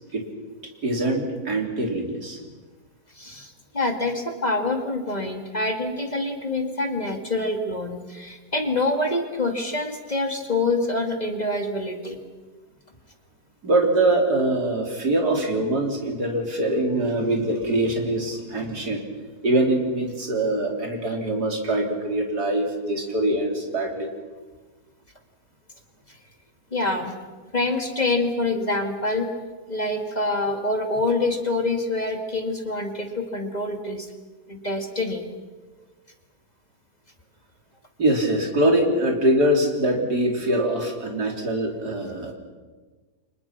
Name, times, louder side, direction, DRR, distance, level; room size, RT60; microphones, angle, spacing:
voice 1, 0.8-2.4 13.6-19.0 19.4-24.1 38.0-42.3, right 1 dB, 80° right, 2 dB, 4.2 m, -23 dB
voice 2, 3.2-12.2 26.7-27.1 27.5-29.3 29.7-34.1 34.5-35.3, left 2 dB, 25° left, 4 dB, 2.2 m, -26 dB
30.0 x 24.5 x 6.0 m, 1.3 s
omnidirectional pair, 1.7 m